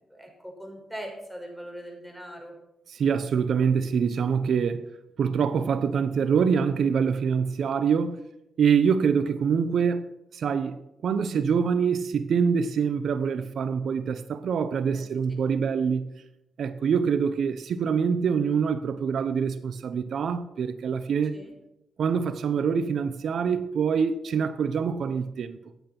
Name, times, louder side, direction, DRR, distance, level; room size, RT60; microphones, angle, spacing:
voice 1, 0.0-2.5 14.9-15.1 21.3-21.5, equal, ahead, 6.1 m, -41 dB
voice 2, 2.9-4.9 5.2-8.2 8.6-10.8 11.0-16.1 16.6-21.3 22.0-25.6, right 6 dB, 70° right, 0.9 m, -25 dB
14.5 x 9.1 x 6.0 m
supercardioid pair, 60°, 0 cm